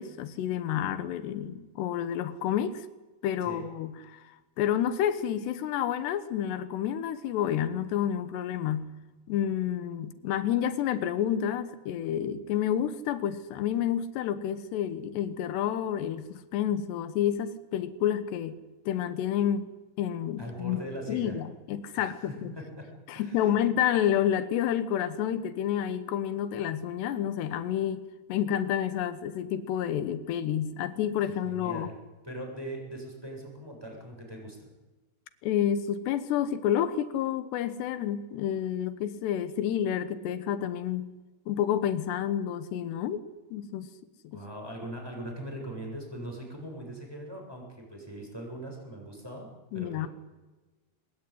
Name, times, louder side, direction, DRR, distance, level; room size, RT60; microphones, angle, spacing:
voice 1, 0.0-2.9 3.2-8.9 9.3-18.6 18.9-19.7 20.0-20.8 21.1-22.5 23.1-31.9 35.4-41.1 41.5-43.2 43.5-43.9 44.2-44.4 49.7-50.1, left 10 dB, 85° left, 12 dB, 3.3 m, -29 dB
voice 2, 20.4-21.4 21.9-22.9 23.1-23.6 31.4-31.9 32.2-34.7 44.3-49.5 49.7-50.1, right 1 dB, 5° right, 0 dB, 7.6 m, -40 dB
23.5 x 21.5 x 10.0 m, 1.2 s
omnidirectional pair, 4.7 m